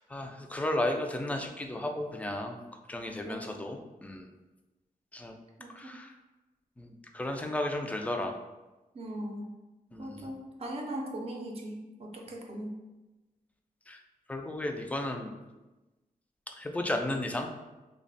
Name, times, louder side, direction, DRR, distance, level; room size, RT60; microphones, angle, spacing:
voice 1, 0.1-2.6 2.9-4.3 5.1-5.3 5.7-6.2 6.8-8.4 9.9-10.3 13.9-14.0 14.3-15.3 16.5-17.5, left 1 dB, 10° left, 3 dB, 0.3 m, -34 dB
voice 2, 3.2-3.6 5.6-5.9 8.9-9.5 10.0-12.7, right 1 dB, 40° right, 0 dB, 0.6 m, -39 dB
3.3 x 2.1 x 3.9 m, 1.1 s
wide cardioid pair, 130°, 15 cm